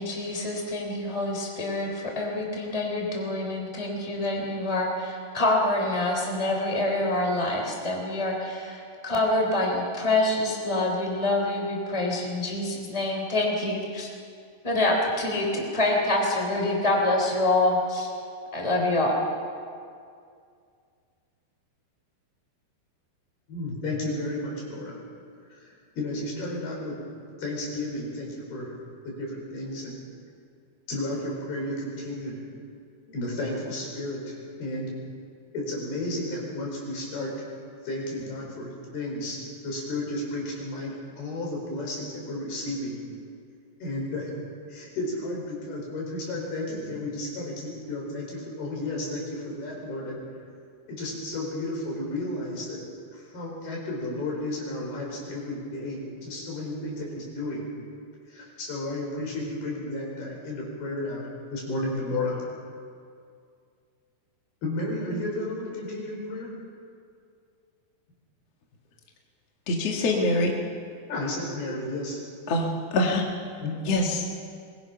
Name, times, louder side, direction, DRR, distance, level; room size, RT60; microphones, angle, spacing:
voice 1, 0.0-14.1 14.6-18.1 18.5-19.2, left 2 dB, 10° left, 0 dB, 3.3 m, -26 dB
voice 2, 23.5-24.9 25.5-27.0 27.4-28.7 29.0-30.0 30.9-32.4 33.0-34.9 35.5-37.3 37.8-43.0 43.8-44.3 44.7-50.2 50.9-52.8 53.1-57.6 58.3-62.4 64.6-66.5 71.1-72.2 73.6-73.8, left 1 dB, 75° left, -2 dB, 6.7 m, -33 dB
voice 3, 69.7-70.5 72.5-73.2 73.9-74.2, left 2 dB, 50° left, -1 dB, 2.3 m, -24 dB
23.5 x 21.0 x 5.7 m, 2.3 s
omnidirectional pair, 4.5 m